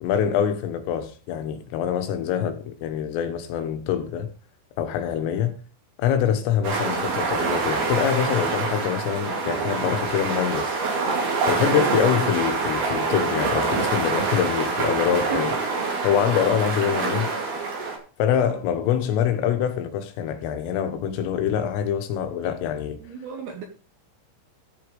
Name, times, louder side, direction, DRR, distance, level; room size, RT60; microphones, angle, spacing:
voice 1, 0.0-4.3 4.8-5.6 6.0-15.6 15.9-17.3 18.2-23.0, left 9 dB, 80° left, 3.8 m, -25 dB
sound 1, 6.6-18.0, right 4 dB, 55° right, 4.3 m, -25 dB
voice 2, 23.0-23.6, right 8 dB, 70° right, 2.5 m, -33 dB
13.5 x 6.7 x 5.3 m
omnidirectional pair, 5.9 m